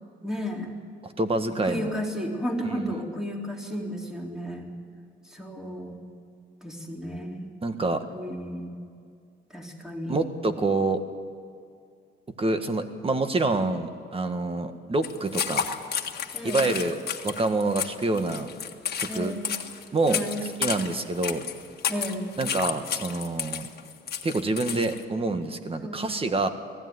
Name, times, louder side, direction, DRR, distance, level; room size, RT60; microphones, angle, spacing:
voice 1, 0.2-0.7 1.5-4.7 5.2-6.1 6.6-7.5 8.1-8.8 9.5-10.2 16.3-16.7 19.1-19.5 20.1-20.4 21.9-22.3 25.8-26.1, equal, 5° right, 0 dB, 3.7 m, -33 dB
voice 2, 1.0-1.9 2.7-2.9 7.6-8.0 10.1-11.0 12.4-15.7 16.4-17.0 17.2-18.5 19.0-19.3 19.9-20.2 20.6-21.4 22.4-23.7 24.2-26.5, right 2 dB, 30° right, 8 dB, 1.7 m, -27 dB
sound 1, 15.0-25.0, left 7 dB, 50° left, 1.6 m, -32 dB
19.5 x 15.0 x 9.6 m, 2.3 s
cardioid pair, 90°, 20 cm